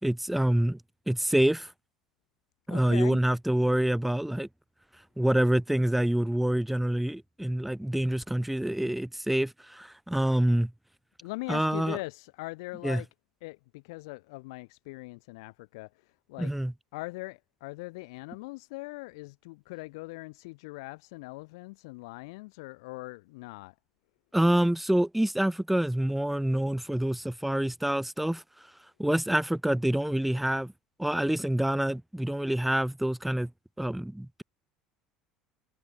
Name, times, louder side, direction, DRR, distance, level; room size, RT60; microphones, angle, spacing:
voice 1, 0.0-0.8 1.1-1.7 2.7-4.5 5.2-10.7 11.5-12.0 12.8-13.0 16.4-16.7 24.3-28.4 29.0-30.7 31.0-33.5 33.8-34.4, right 1 dB, 5° right, 4.6 m, -26 dB
voice 2, 2.7-3.2 11.2-13.1 13.4-16.5 16.9-23.7, left 24 dB, 60° left, 7.9 m, -41 dB
figure-of-eight pair, 65°, 3 cm